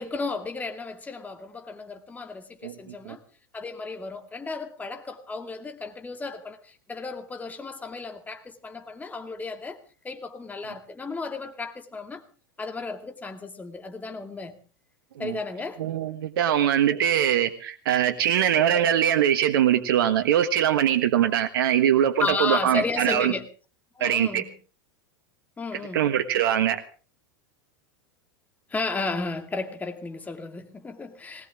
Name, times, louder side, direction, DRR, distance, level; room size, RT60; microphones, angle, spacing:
voice 1, 0.0-3.2 3.5-9.8 10.0-12.2 12.6-14.6 15.2-15.9 18.7-18.9 22.2-23.4 24.0-24.5 25.6-26.1 28.7-31.5, left 4 dB, 15° left, 2.3 m, -33 dB
voice 2, 15.8-23.3 24.0-24.4 25.9-26.8, right 10 dB, 80° right, 1.4 m, -22 dB
20.0 x 18.5 x 3.7 m
hypercardioid pair, 115°, 12 cm